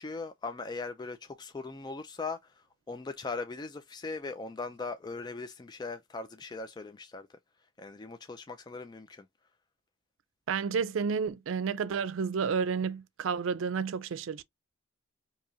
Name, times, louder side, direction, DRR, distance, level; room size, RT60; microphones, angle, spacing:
voice 1, 0.0-7.3 7.8-9.3, left 3 dB, 20° left, 0.3 m, -39 dB
voice 2, 10.5-14.4, right 6 dB, 85° right, 0.4 m, -31 dB
4.8 x 2.9 x 2.7 m
head